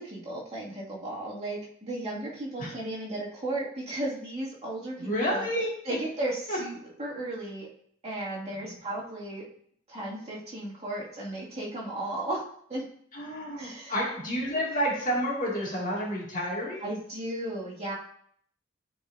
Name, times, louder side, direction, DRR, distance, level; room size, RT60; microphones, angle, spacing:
voice 1, 0.0-5.5 5.8-7.7 8.0-9.4 9.9-12.4 12.7-12.8 13.6-13.9 16.8-17.9, right 1 dB, 30° right, -6 dB, 2.2 m, -35 dB
voice 2, 5.0-5.7 6.5-6.6 8.5-8.7 13.1-16.9, equal, 40° left, -4 dB, 2.3 m, -30 dB
11.5 x 4.8 x 2.7 m, 0.64 s
head